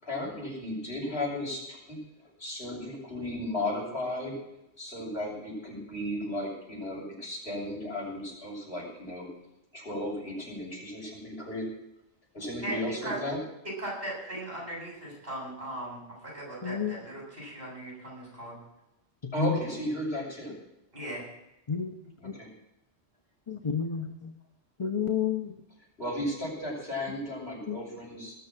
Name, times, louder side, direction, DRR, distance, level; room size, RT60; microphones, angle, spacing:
voice 1, 0.0-2.0 2.4-4.3 4.8-9.3 9.7-11.7 12.3-13.4 19.3-20.5 22.2-22.5 26.0-28.3, left 1 dB, 60° left, -3 dB, 6.8 m, -34 dB
voice 2, 12.6-13.2 13.8-18.6 20.9-21.2, right 1 dB, 55° right, -3 dB, 7.8 m, -38 dB
voice 3, 16.6-16.9 19.2-19.3 21.7-21.9 23.5-24.1 24.8-25.5 27.7-27.8, left 7 dB, 30° left, 5 dB, 0.8 m, -30 dB
19.5 x 7.0 x 7.7 m, 0.87 s
omnidirectional pair, 1.1 m